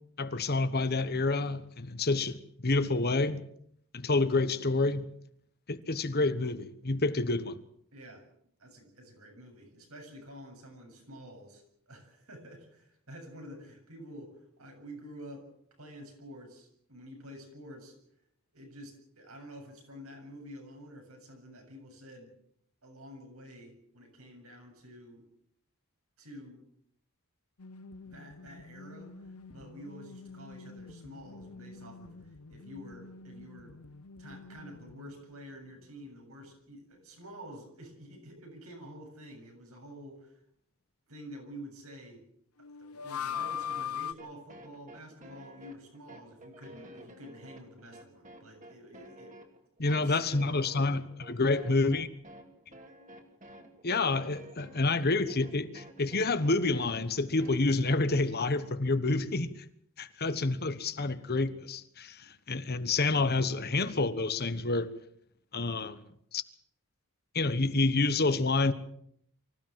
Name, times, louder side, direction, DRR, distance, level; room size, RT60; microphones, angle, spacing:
voice 1, 0.2-3.4 3.9-5.1 5.7-7.6 49.8-52.1 53.8-59.5 60.0-64.9 65.5-66.0 66.3-66.4 67.3-68.7, left 3 dB, 50° left, 1.2 m, -28 dB
voice 2, 7.9-8.2 8.6-15.5 15.8-17.9 18.5-22.3 22.8-25.2 26.2-26.6 28.0-33.8 34.2-40.4 41.1-42.2 42.8-49.3 49.8-50.7, equal, 80° right, 7.6 m, -49 dB
sound 1, 27.6-35.4 35.7-35.8 42.6-44.1, left 7 dB, 90° left, 0.8 m, -42 dB
sound 2, 43.3-58.2, right 1 dB, 35° right, 2.9 m, -52 dB
25.0 x 15.5 x 7.6 m
head